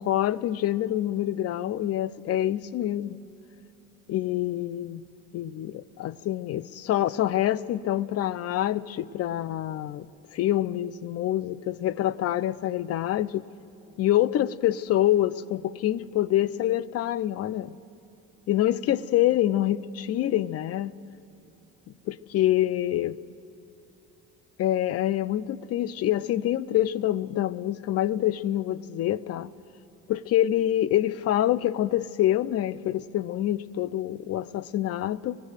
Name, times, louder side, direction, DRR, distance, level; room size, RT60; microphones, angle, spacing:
voice 1, 0.0-3.2 4.1-5.0 5.3-10.1 10.3-13.4 14.0-17.8 18.5-20.9 22.1-23.2 24.6-29.5 30.1-35.4, left 13 dB, 50° left, 0.6 m, -26 dB
25.0 x 18.0 x 6.5 m
supercardioid pair, 85°, 32 cm